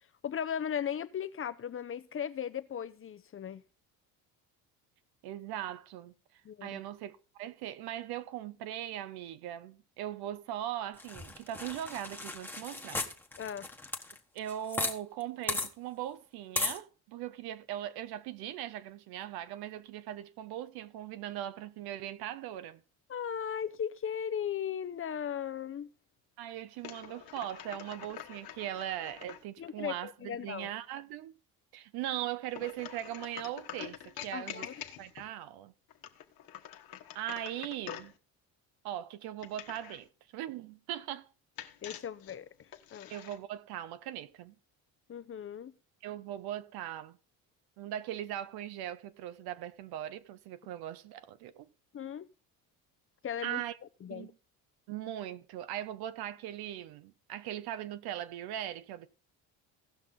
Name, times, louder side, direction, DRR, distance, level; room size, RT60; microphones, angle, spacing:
voice 1, 0.2-3.6 6.4-6.8 13.4-13.7 23.1-25.9 29.6-30.7 34.3-34.7 41.8-42.5 42.9-43.1 45.1-45.7 51.9-52.3 53.2-53.6 54.0-54.3, left 8 dB, 35° left, 0.7 m, -37 dB
voice 2, 5.2-6.1 6.6-13.1 14.3-22.8 26.4-31.4 31.7-34.7 35.0-35.7 37.1-38.1 38.8-41.3 43.1-44.6 46.0-47.2 47.8-51.7 53.4-53.8 54.1-54.4 54.9-59.1, right 12 dB, 75° right, 0.9 m, -40 dB
sound 1, 11.0-15.0 15.2-15.3 15.5-15.7 16.6-16.8, left 2 dB, 5° left, 1.2 m, -35 dB
sound 2, 26.8-29.4 32.5-35.3 35.9-38.2 39.4-40.1 41.6-43.4, left 11 dB, 65° left, 1.3 m, -46 dB
16.5 x 6.0 x 3.8 m
supercardioid pair, 95°, 38 cm